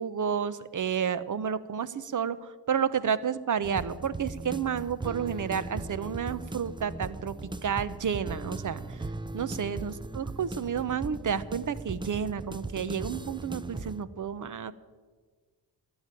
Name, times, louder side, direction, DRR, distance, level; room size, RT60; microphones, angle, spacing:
voice 1, 0.0-9.0 9.3-14.7, right 7 dB, 40° right, 14 dB, 0.8 m, -31 dB
sound 1, 3.6-14.0, right 2 dB, 10° right, 0.6 m, -38 dB
12.0 x 8.6 x 9.1 m, 1.4 s
supercardioid pair, 50°, 48 cm